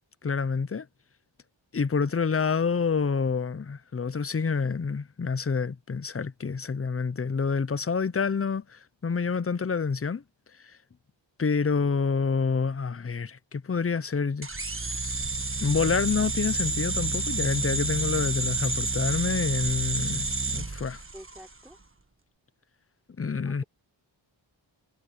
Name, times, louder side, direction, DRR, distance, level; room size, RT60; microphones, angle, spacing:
voice 1, 0.2-0.9 1.7-10.2 10.6-10.8 11.4-14.5 15.6-21.0 23.2-23.6, left 5 dB, 30° left, 0.6 m, -28 dB
sound 1, 14.4-21.5, right 3 dB, 25° right, 1.5 m, -29 dB
voice 2, 21.1-21.8 23.4-23.6, equal, 5° right, 3.4 m, -48 dB
wide cardioid pair, 70°, 47 cm